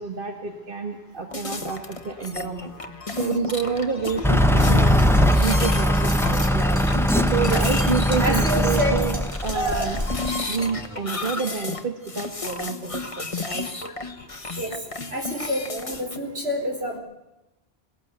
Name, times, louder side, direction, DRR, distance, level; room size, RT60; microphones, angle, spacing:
voice 1, 0.0-2.7 3.1-6.8 7.2-9.2 9.4-10.0 10.5-13.7, right 5 dB, 55° right, 4 dB, 1.8 m, -29 dB
sound 1, 1.3-16.2, left 3 dB, 30° left, 1.4 m, -32 dB
Truck / Idling, 4.2-10.3, equal, 5° left, 0.9 m, -20 dB
sound 2, 5.0-10.1, equal, 25° right, 4.4 m, -41 dB
voice 2, 8.2-8.9 9.5-9.9 14.6-14.7 15.1-17.0, equal, 75° right, 2 dB, 4.9 m, -27 dB
20.5 x 18.0 x 8.1 m, 0.96 s
omnidirectional pair, 1.1 m